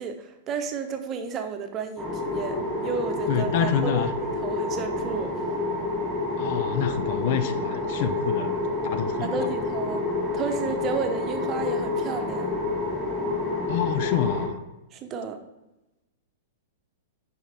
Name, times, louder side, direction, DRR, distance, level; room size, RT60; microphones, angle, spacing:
voice 1, 0.0-5.3 9.2-10.0 10.3-12.5 14.9-15.4, right 5 dB, 30° right, 6 dB, 0.9 m, -32 dB
sound 1, 2.0-14.5, left 2 dB, 10° left, 2.0 m, -28 dB
voice 2, 3.3-4.1 6.4-8.5 8.8-9.5 13.7-14.6, left 9 dB, 50° left, 12 dB, 0.5 m, -27 dB
10.5 x 4.6 x 3.4 m, 1.0 s
figure-of-eight pair, 105°, 0 cm